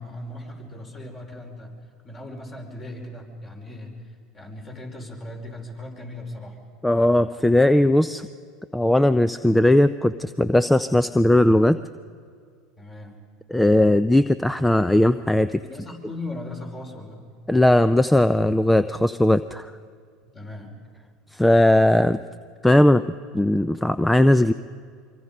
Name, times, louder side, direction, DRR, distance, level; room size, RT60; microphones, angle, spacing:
voice 1, 0.0-1.7 2.0-3.9 4.3-6.6 12.8-13.2 15.6-17.3 20.2-20.8, left 1 dB, 30° left, 2 dB, 5.1 m, -38 dB
voice 2, 6.8-8.3 8.7-11.8 13.5-15.6 17.5-19.7 21.3-22.2 22.6-24.5, left 1 dB, 5° left, 13 dB, 0.5 m, -18 dB
24.5 x 24.0 x 5.5 m, 2.1 s
supercardioid pair, 95°, 0 cm